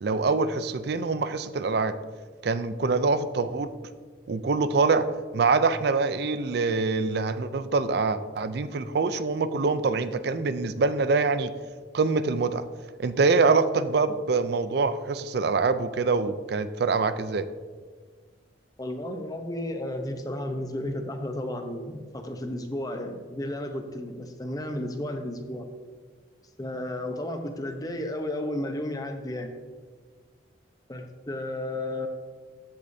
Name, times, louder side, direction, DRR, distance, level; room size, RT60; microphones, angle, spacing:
voice 1, 0.0-1.9 2.4-3.7 4.3-5.1 5.3-11.5 11.9-12.6 13.0-17.5, right 4 dB, 60° right, 12 dB, 0.4 m, -25 dB
voice 2, 18.8-25.7 26.6-29.5 30.9-32.1, left 1 dB, 20° left, 5 dB, 0.8 m, -33 dB
13.0 x 8.4 x 2.7 m, 1.5 s
head